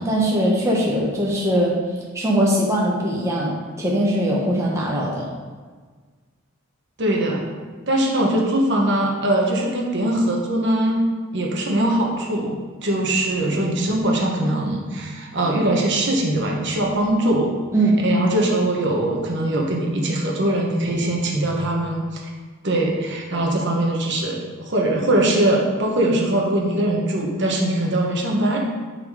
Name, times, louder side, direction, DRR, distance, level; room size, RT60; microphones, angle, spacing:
voice 1, 0.0-1.8 2.1-5.3 17.7-18.0, right 1 dB, 15° right, -4 dB, 1.3 m, -21 dB
voice 2, 7.0-7.4 7.9-11.1 11.3-12.6 12.8-17.5 18.0-22.0 22.6-28.6, right 1 dB, 55° right, -1 dB, 1.3 m, -21 dB
10.5 x 4.2 x 5.0 m, 1.5 s
head